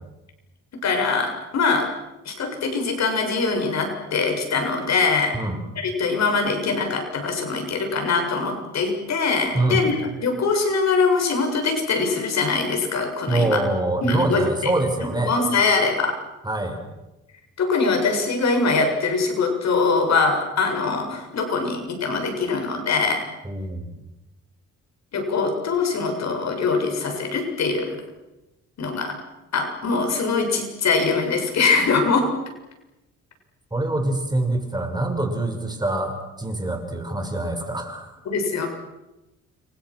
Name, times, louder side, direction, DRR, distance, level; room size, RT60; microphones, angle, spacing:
voice 1, 0.7-1.9 2.3-5.4 5.8-9.9 10.2-13.6 14.0-14.7 15.0-16.2 17.6-23.2 25.1-28.0 28.8-29.2 29.5-32.3 38.3-38.7, left 4 dB, 60° left, 4 dB, 7.5 m, -22 dB
voice 2, 13.3-15.3 16.4-16.8 23.4-23.9 33.7-38.1, right 2 dB, 15° right, 5 dB, 6.3 m, -24 dB
30.0 x 27.0 x 6.4 m, 0.98 s
cardioid pair, 90°, 30 cm